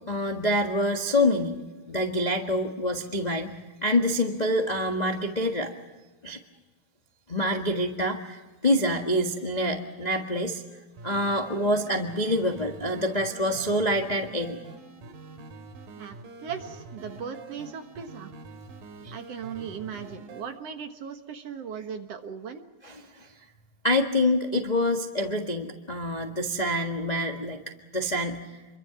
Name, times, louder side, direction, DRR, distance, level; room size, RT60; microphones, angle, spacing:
voice 1, 0.1-1.6 1.9-3.5 3.8-5.7 6.2-6.4 7.3-14.6 19.0-19.1 22.8-23.3 23.8-27.6 27.9-28.4, left 1 dB, 60° left, 3 dB, 0.4 m, -26 dB
sound 1, 10.9-20.4, right 3 dB, 80° right, 3.7 m, -45 dB
voice 2, 15.9-18.3 19.1-22.6, right 7 dB, 55° right, 6 dB, 2.1 m, -38 dB
28.0 x 23.5 x 5.9 m, 1.2 s
omnidirectional pair, 3.9 m